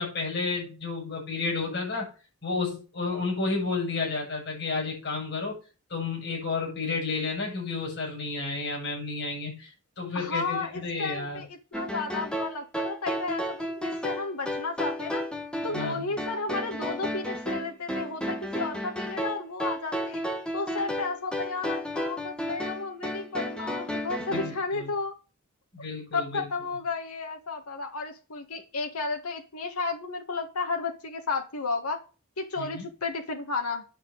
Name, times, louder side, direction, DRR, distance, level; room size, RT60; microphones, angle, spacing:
voice 1, 0.0-2.1 2.4-5.6 5.9-9.7 10.0-11.4 15.7-16.1 24.3-24.9 25.7-26.4 32.6-32.9, left 3 dB, 50° left, -1 dB, 7.5 m, -31 dB
voice 2, 10.1-15.2 15.6-20.2 20.5-25.1 25.8-25.9 26.1-32.0 32.4-33.8, left 3 dB, 90° left, 3 dB, 1.7 m, -33 dB
sound 1, 11.7-24.6, equal, 5° left, 1.4 m, -33 dB
10.0 x 5.3 x 8.1 m, 0.33 s
head